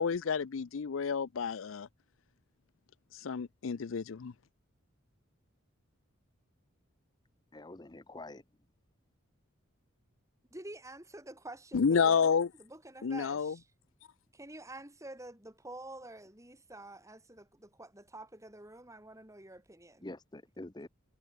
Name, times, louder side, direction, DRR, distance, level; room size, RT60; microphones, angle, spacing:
voice 1, 0.0-1.9 3.1-4.3 11.7-12.5 13.0-13.5, left 6 dB, 70° left, 0.5 m, -30 dB
voice 2, 7.5-8.4 20.0-20.9, left 2 dB, 20° left, 0.9 m, -46 dB
voice 3, 10.5-13.6 14.3-20.1, right 1 dB, 15° right, 4.9 m, -48 dB
head